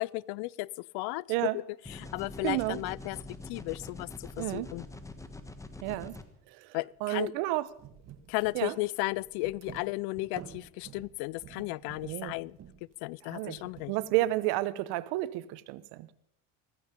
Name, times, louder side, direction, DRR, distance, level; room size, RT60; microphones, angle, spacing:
voice 1, 0.0-1.2 1.5-1.6 1.9-3.2 3.5-4.8 6.7-7.3 8.3-12.6 13.0-13.9, left 22 dB, 75° left, 0.5 m, -34 dB
sound 1, 1.9-6.2, left 2 dB, 10° left, 1.4 m, -44 dB
voice 2, 2.4-2.8 4.4-4.7 5.8-6.2 6.5-6.8 7.0-7.7 8.5-8.7 12.0-12.3 13.3-13.6 13.9-16.1, right 17 dB, 80° right, 1.0 m, -31 dB
sound 2, 6.8-7.0 7.2-7.3 7.7-14.4, right 9 dB, 40° right, 1.5 m, -51 dB
16.0 x 15.0 x 5.2 m
cardioid pair, 125°, 39 cm